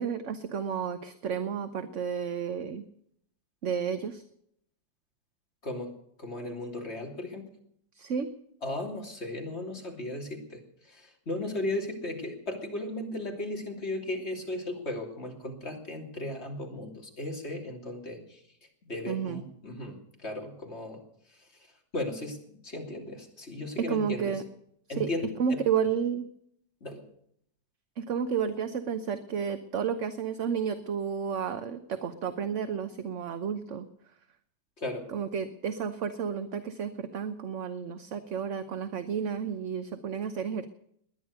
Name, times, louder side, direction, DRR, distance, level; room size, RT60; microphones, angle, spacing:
voice 1, 0.0-2.8 3.6-4.2 8.0-8.3 19.1-19.4 23.9-24.4 25.0-25.1 25.4-26.3 28.0-33.9 35.1-40.7, right 7 dB, 55° right, 10 dB, 1.2 m, -31 dB
voice 2, 6.2-7.4 8.6-18.4 18.8-21.0 21.3-21.7 21.9-24.4 24.9-25.6 26.8-27.0 34.8-35.1, left 2 dB, 40° left, 2 dB, 3.3 m, -36 dB
20.0 x 10.5 x 6.7 m, 0.70 s
omnidirectional pair, 1.7 m